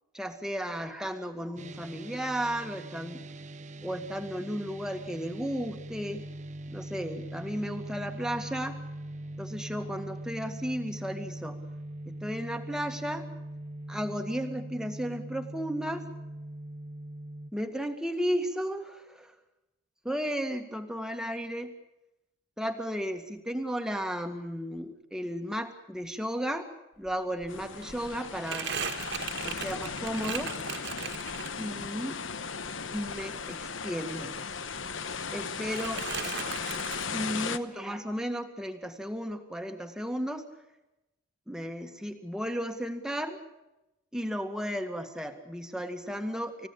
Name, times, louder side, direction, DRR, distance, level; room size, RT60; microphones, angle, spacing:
voice 1, 0.1-3.2 3.8-6.3 6.7-8.8 9.4-11.6 12.1-13.3 13.9-16.0 17.5-19.3 20.0-21.7 22.6-26.7 27.0-28.7 29.4-30.5 31.6-32.2 32.9-34.4 35.3-36.1 36.4-36.6 37.0-40.5 41.5-43.4 44.1-46.7, equal, 5° right, 5 dB, 1.9 m, -34 dB
sound 1, 1.6-17.5, right 1 dB, 35° right, 0.8 m, -41 dB
Crumpling crinkling, 27.1-27.2 27.4-31.9 32.2-34.4 34.6-35.4 35.7-37.1, right 7 dB, 55° right, 1.9 m, -38 dB
sound 2, 27.5-37.6, left 5 dB, 65° left, 1.1 m, -37 dB
30.0 x 16.5 x 8.8 m, 0.96 s
head